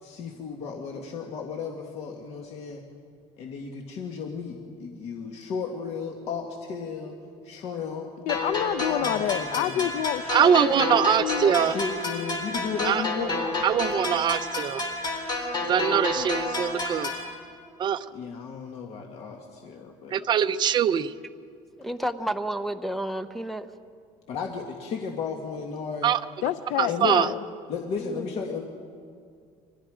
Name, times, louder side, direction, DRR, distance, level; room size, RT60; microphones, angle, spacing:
voice 1, 0.0-2.8 3.4-7.2 7.4-8.1 9.0-9.9 11.6-13.4 16.1-16.3 18.1-20.2 24.3-26.2 26.9-27.2 27.7-28.6, left 5 dB, 55° left, 1 dB, 1.9 m, -34 dB
voice 2, 8.2-11.5 26.4-27.4, left 12 dB, 75° left, 13 dB, 0.6 m, -29 dB
sound 1, 8.3-17.3, left 2 dB, 35° left, 4.3 m, -30 dB
voice 3, 10.3-11.7 12.8-13.0 13.6-14.8 15.7-17.1 17.8-18.0 20.1-21.1 26.0-26.2 26.8-27.3, right 8 dB, 35° right, 9 dB, 0.7 m, -23 dB
voice 4, 21.7-23.7 28.0-28.6, right 1 dB, ahead, 9 dB, 0.9 m, -31 dB
30.0 x 25.0 x 5.0 m, 2.2 s
cardioid pair, 155°, 13 cm